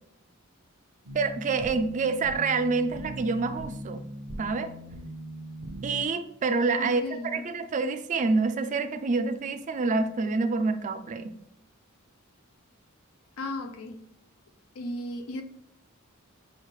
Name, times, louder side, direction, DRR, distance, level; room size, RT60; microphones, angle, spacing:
voice 1, 1.1-4.0 4.4-4.7 5.8-7.0 7.3-11.4, right 4 dB, 35° right, 0.3 m, -27 dB
sound 1, 1.1-6.1, right 1 dB, 65° right, 0.7 m, -40 dB
voice 2, 6.8-7.5 13.4-14.1 14.7-15.4, left 1 dB, 90° left, 0.5 m, -35 dB
6.2 x 2.4 x 3.2 m
head